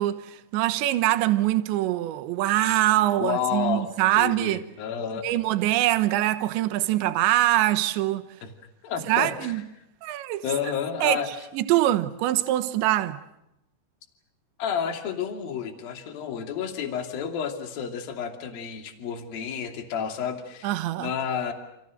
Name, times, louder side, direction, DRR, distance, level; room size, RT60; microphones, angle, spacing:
voice 1, 0.0-4.6 5.2-8.3 9.1-9.6 10.0-10.4 11.0-13.2 20.6-21.1, right 15 dB, 80° right, 3.5 m, -24 dB
voice 2, 3.2-3.9 4.2-5.3 8.4-8.5 8.8-9.6 10.4-11.3 14.6-21.5, left 7 dB, 55° left, 4.3 m, -30 dB
30.0 x 27.5 x 6.5 m
omnidirectional pair, 5.3 m